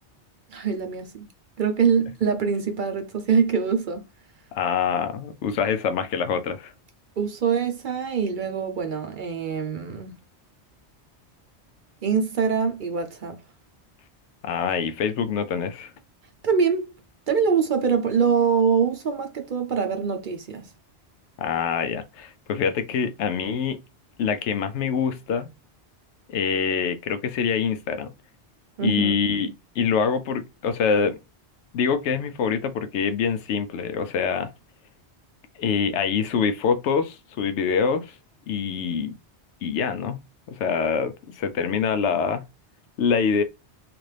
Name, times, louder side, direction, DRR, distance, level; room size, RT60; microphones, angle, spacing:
voice 1, 0.5-1.3 1.6-4.0 7.2-10.1 12.0-13.4 16.4-16.9 17.3-20.7 28.8-29.2, right 6 dB, 55° right, 0.7 m, -24 dB
voice 2, 4.5-6.7 14.4-15.9 21.4-23.8 24.2-25.5 26.3-28.1 28.8-31.2 31.7-34.5 35.6-38.1 38.5-39.1 39.6-40.2 40.5-42.4 43.0-43.4, left 6 dB, 85° left, 0.9 m, -25 dB
3.3 x 2.5 x 3.2 m
omnidirectional pair, 1.2 m